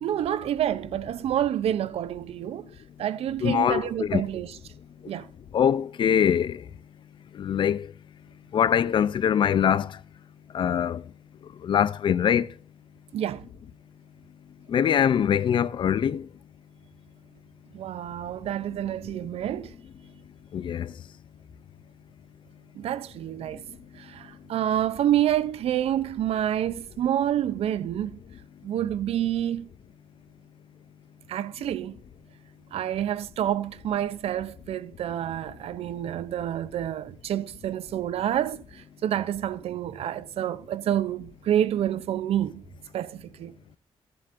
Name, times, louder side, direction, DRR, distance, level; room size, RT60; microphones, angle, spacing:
voice 1, 0.0-2.7 3.0-4.5 5.1-5.3 13.1-13.5 17.7-19.7 22.7-23.6 24.0-28.2 28.6-29.7 31.3-32.0 32.7-42.7 42.9-43.5, right 11 dB, 70° right, 0.4 m, -28 dB
voice 2, 3.4-4.2 5.5-6.6 7.4-7.9 8.5-10.0 10.5-11.0 11.6-12.5 14.7-16.3 20.5-20.9, left 8 dB, 50° left, 0.4 m, -23 dB
15.0 x 7.7 x 2.5 m
cardioid pair, 125°, 11 cm